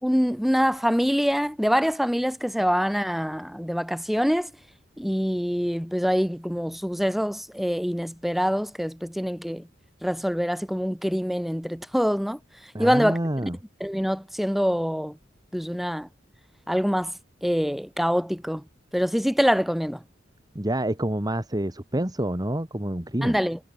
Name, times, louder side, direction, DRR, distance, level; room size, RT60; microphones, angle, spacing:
voice 1, 0.0-4.5 5.0-9.7 10.0-12.4 12.8-13.2 13.8-15.2 15.5-16.1 16.7-17.1 17.4-18.6 18.9-20.0 23.2-23.6, equal, ahead, 4.7 m, -25 dB
voice 2, 12.7-13.6 20.6-23.4, right 1 dB, 20° right, 1.8 m, -27 dB
head